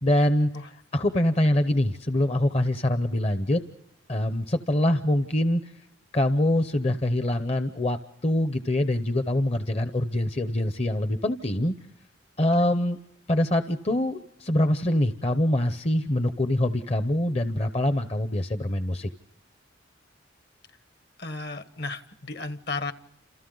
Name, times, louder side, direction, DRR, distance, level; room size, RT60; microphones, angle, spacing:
voice 1, 0.0-3.6 4.1-5.7 6.1-11.7 12.4-13.0 13.3-19.1, left 1 dB, 30° left, 0.7 m, -24 dB
voice 2, 21.2-22.9, left 3 dB, 55° left, 1.2 m, -34 dB
29.5 x 28.0 x 3.9 m
head